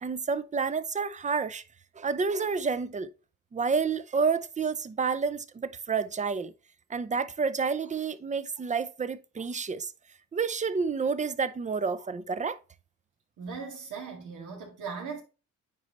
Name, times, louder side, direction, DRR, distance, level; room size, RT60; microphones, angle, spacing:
voice 1, 0.0-1.6 2.0-3.1 3.5-6.5 6.9-9.9 10.3-12.6, right 5 dB, 25° right, 0.5 m, -29 dB
voice 2, 13.4-15.2, right 5 dB, 90° right, 2.2 m, -38 dB
9.4 x 4.0 x 3.1 m
cardioid pair, 90°, 30 cm